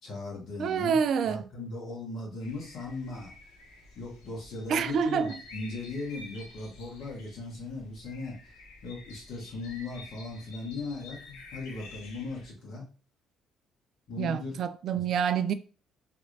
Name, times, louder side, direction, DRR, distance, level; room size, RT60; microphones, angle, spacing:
voice 1, 0.0-0.9 1.2-3.3 3.9-8.4 8.8-12.8 14.1-14.5, left 3 dB, 65° left, 1.7 m, -38 dB
voice 2, 0.6-1.4 4.7-5.4 14.2-15.5, right 7 dB, 65° right, 0.3 m, -27 dB
sound 1, 2.4-12.5, left 2 dB, 85° left, 0.8 m, -50 dB
3.4 x 3.0 x 2.7 m
hypercardioid pair, 60°, 0 cm